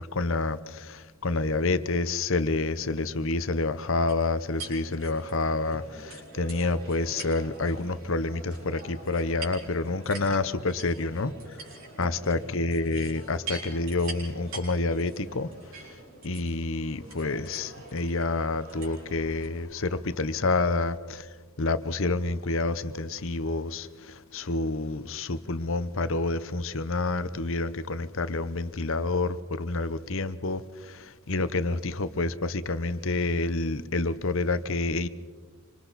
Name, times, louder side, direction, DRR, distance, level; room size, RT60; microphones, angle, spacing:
voice 1, 0.0-11.6 12.0-15.5 16.2-21.3 21.6-35.1, left 3 dB, 60° left, 0.9 m, -28 dB
sound 1, 4.1-19.5, right 3 dB, 65° right, 6.0 m, -44 dB
27.0 x 26.0 x 4.2 m
head